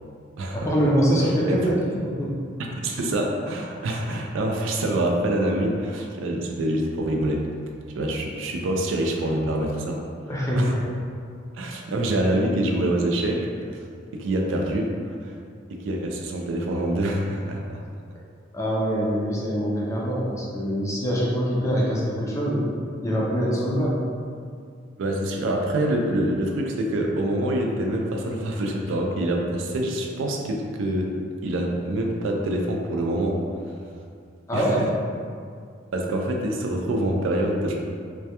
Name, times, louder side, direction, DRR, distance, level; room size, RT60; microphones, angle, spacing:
voice 1, 0.5-2.3 10.3-10.8 18.5-22.7 23.0-24.1 34.5-34.9, equal, 15° left, -5 dB, 0.3 m, -24 dB
voice 2, 2.8-7.5 7.9-10.0 10.6-10.7 11.5-13.5 14.1-15.4 15.7-17.8 25.0-31.1 31.4-33.4 34.5-34.9 35.9-37.8, right 1 dB, 80° right, 1 dB, 0.3 m, -25 dB
2.2 x 2.1 x 2.8 m, 2.2 s
head